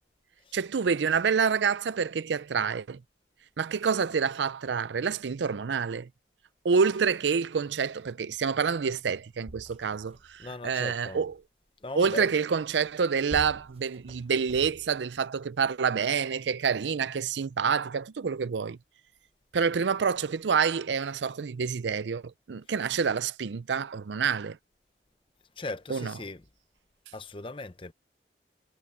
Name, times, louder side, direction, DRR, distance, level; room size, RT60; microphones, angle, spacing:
voice 1, 0.5-3.0 3.6-6.1 6.6-11.3 12.0-18.8 19.5-24.6 25.9-26.1, right 6 dB, 85° right, 0.5 m, -27 dB
sound 1, 8.8-8.9 9.1-10.5 12.8-15.2 15.9-16.0, right 1 dB, 35° right, 1.2 m, -45 dB
voice 2, 10.4-11.3 11.8-12.3 22.7-22.8 25.6-26.5 27.1-27.9, left 2 dB, 30° left, 0.8 m, -39 dB
head